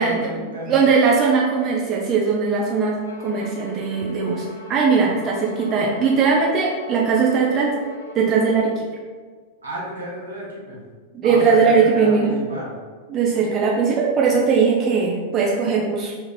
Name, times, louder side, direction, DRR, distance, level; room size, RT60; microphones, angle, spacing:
voice 1, 0.0-0.9 9.6-10.8 11.2-12.8, equal, 75° right, -5 dB, 0.8 m, -32 dB
voice 2, 0.7-3.0 3.2-7.8 8.1-8.9 11.1-12.3 13.1-16.1, right 5 dB, 30° right, -2 dB, 0.3 m, -19 dB
Bowed string instrument, 3.0-8.8, left 2 dB, 75° left, 0.4 m, -40 dB
3.2 x 2.4 x 2.2 m, 1.5 s
figure-of-eight pair, 90°, 0 cm